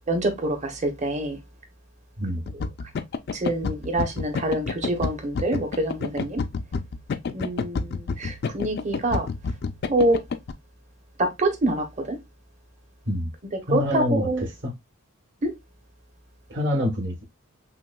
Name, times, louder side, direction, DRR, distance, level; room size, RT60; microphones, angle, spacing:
voice 1, 0.1-1.4 3.3-6.4 7.3-9.3 9.9-10.2 11.2-12.2 13.7-14.5 15.4-15.5, right 1 dB, 35° right, 0.8 m, -25 dB
sound 1, 2.5-10.5, left 4 dB, 50° left, 0.3 m, -29 dB
voice 2, 13.7-14.3 14.6-14.7 16.5-17.2, left 1 dB, 55° right, 1.1 m, -25 dB
5.7 x 2.2 x 2.2 m
head